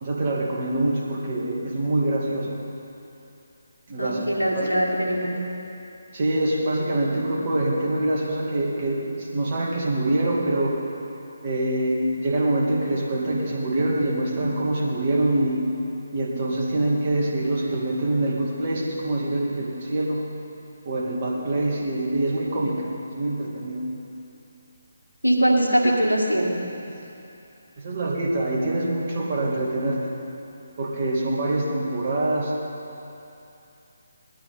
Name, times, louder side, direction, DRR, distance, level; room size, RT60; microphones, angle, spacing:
voice 1, 0.0-2.5 3.9-4.2 4.5-4.7 6.1-10.8 11.4-15.6 16.1-20.3 20.8-22.9 23.1-23.8 26.9-27.0 27.8-30.1 30.8-32.5, right 1 dB, 35° right, -3 dB, 2.4 m, -25 dB
voice 2, 4.0-5.4 25.2-26.6, right 1 dB, 85° right, -4 dB, 2.1 m, -22 dB
18.5 x 12.5 x 4.2 m, 2.8 s
figure-of-eight pair, 145°, 0 cm